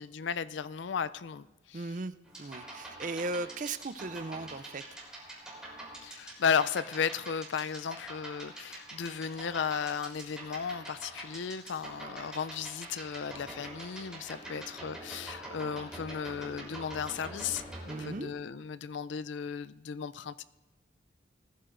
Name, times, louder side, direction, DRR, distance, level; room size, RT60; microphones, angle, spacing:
voice 1, 0.0-1.9 6.0-20.4, left 6 dB, 80° left, 15 dB, 0.4 m, -35 dB
voice 2, 1.7-4.8 17.9-18.3, right 3 dB, 40° right, 12 dB, 0.4 m, -37 dB
sound 1, 2.3-18.1, right 1 dB, 5° right, 3.5 m, -45 dB
20.0 x 14.5 x 2.6 m, 1.2 s
head